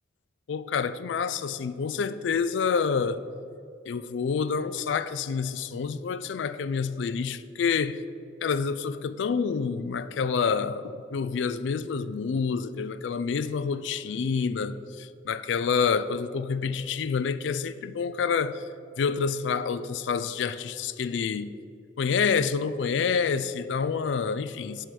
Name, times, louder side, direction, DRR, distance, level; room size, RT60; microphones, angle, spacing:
voice 1, 0.5-3.2 3.9-8.0 8.4-18.6 19.0-21.5 22.0-24.9, left 6 dB, 80° left, 0.4 m, -28 dB
7.4 x 5.0 x 6.8 m
head